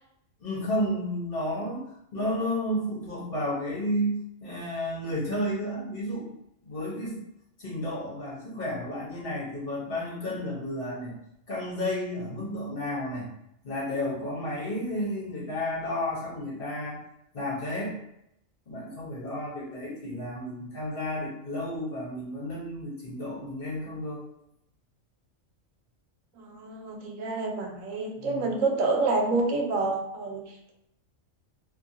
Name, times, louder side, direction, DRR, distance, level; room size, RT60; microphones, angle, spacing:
voice 1, 0.4-1.8 2.1-6.4 6.6-7.2 7.6-11.2 11.5-13.3 13.6-17.0 17.3-18.0 18.7-24.2 28.2-28.4, left 1 dB, 50° left, -6 dB, 1.1 m, -32 dB
voice 2, 26.4-30.7, right 3 dB, 85° right, 1 dB, 1.0 m, -28 dB
2.8 x 2.6 x 2.7 m, 0.79 s
omnidirectional pair, 1.4 m